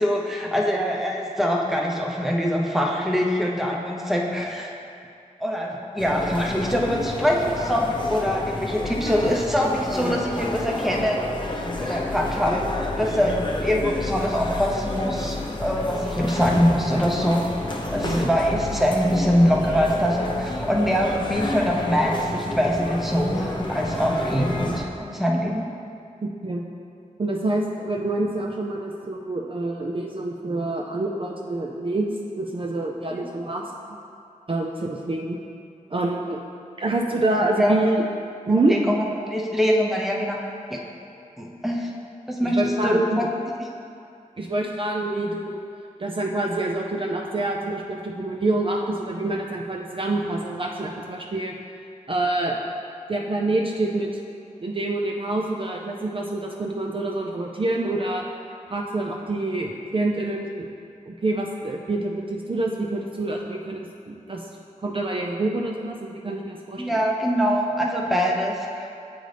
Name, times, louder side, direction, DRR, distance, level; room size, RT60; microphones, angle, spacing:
voice 1, 0.0-4.7 5.4-11.2 11.8-12.6 13.0-13.3 13.6-15.4 15.6-17.5 17.9-25.7 33.1-33.3 37.6-37.7 38.7-39.0 39.3-40.4 40.7-40.8 41.4-41.9 42.3-43.3 66.8-68.9, equal, ahead, -2 dB, 0.7 m, -23 dB
sound 1, 6.0-24.8, left 2 dB, 35° left, 0.7 m, -30 dB
voice 2, 26.2-26.6 27.2-32.1 32.4-33.7 34.5-35.4 35.9-36.4 36.8-38.1 38.5-38.8 42.4-43.3 44.4-45.6 46.0-51.5 52.1-52.6 53.1-54.2 54.6-58.2 58.7-60.7 61.1-64.5 64.8-67.1, right 2 dB, 40° right, 0 dB, 0.4 m, -26 dB
7.7 x 3.9 x 3.3 m, 2.5 s
wide cardioid pair, 70°, 14 cm